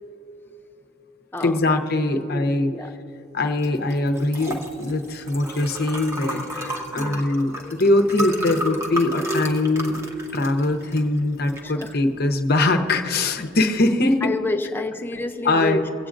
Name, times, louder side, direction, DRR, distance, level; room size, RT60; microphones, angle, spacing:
voice 1, 1.4-2.7 3.3-10.0 10.3-14.3 15.4-15.9, left 2 dB, 55° left, 6 dB, 0.8 m, -22 dB
voice 2, 2.3-2.9 7.0-7.3 11.6-12.0 14.2-15.8, left 2 dB, 10° left, 5 dB, 0.5 m, -29 dB
Liquid, 3.6-13.7, equal, 15° right, 0.9 m, -33 dB
23.0 x 8.4 x 2.5 m, 2.7 s
head